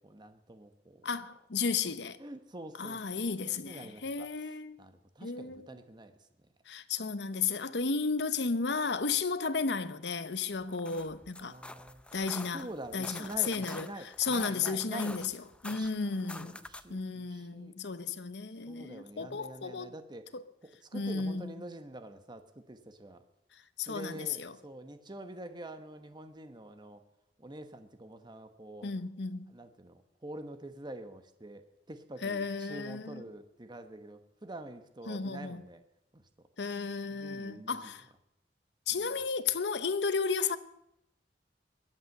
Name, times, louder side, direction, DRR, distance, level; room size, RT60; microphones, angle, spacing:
voice 1, 0.0-1.1 2.2-4.3 4.8-6.5 11.4-12.0 12.5-15.2 15.7-17.8 18.7-20.3 20.8-23.2 23.8-27.0 27.4-28.9 29.5-31.6 31.9-35.8 36.1-36.3 37.1-37.9 38.9-39.0, right 1 dB, 25° right, 1.2 m, -46 dB
voice 2, 1.0-2.2 2.8-4.8 5.2-5.6 6.7-11.6 12.1-12.7 12.9-13.9 14.2-15.3 15.6-16.6 16.9-19.9 20.3-20.4 20.9-21.5 23.8-24.5 28.8-29.5 32.2-33.2 35.1-35.6 36.6-38.1 38.9-40.6, left 5 dB, 70° left, 0.9 m, -33 dB
sound 1, 10.6-17.0, left 1 dB, 5° left, 0.6 m, -47 dB
21.5 x 8.9 x 6.6 m
head